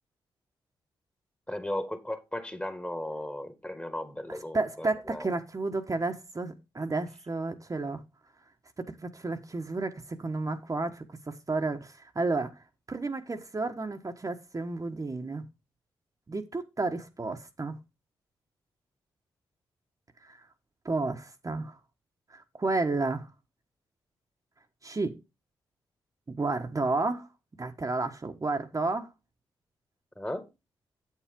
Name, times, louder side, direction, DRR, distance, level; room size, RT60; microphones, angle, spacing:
voice 1, 1.5-5.3 30.2-30.5, left 1 dB, 10° left, 1.9 m, -36 dB
voice 2, 4.3-8.0 8.8-12.5 12.9-15.4 16.3-17.8 20.2-20.5 20.8-21.8 22.3-23.3 24.8-25.2 26.4-27.3 27.6-29.1, right 3 dB, 35° right, 1.4 m, -32 dB
7.9 x 7.6 x 3.7 m
supercardioid pair, 45°, 10 cm